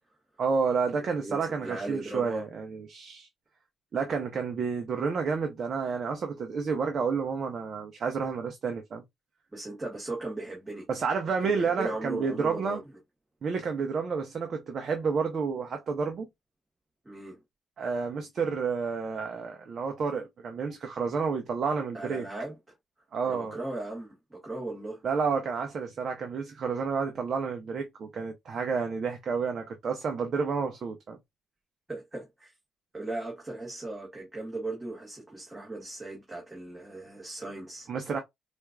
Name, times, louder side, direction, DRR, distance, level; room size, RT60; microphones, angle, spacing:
voice 1, 0.4-3.3 3.9-9.0 10.9-12.8 13.4-16.3 17.8-22.3 23.1-23.6 25.0-31.2 37.9-38.2, right 5 dB, 50° right, 0.7 m, -30 dB
voice 2, 1.0-2.4 9.5-10.9 11.4-12.8 17.0-17.4 21.9-22.6 23.2-25.0 31.9-32.5 32.9-37.9, right 2 dB, 15° right, 1.5 m, -37 dB
4.4 x 2.5 x 2.3 m
cardioid pair, 90°, 0 cm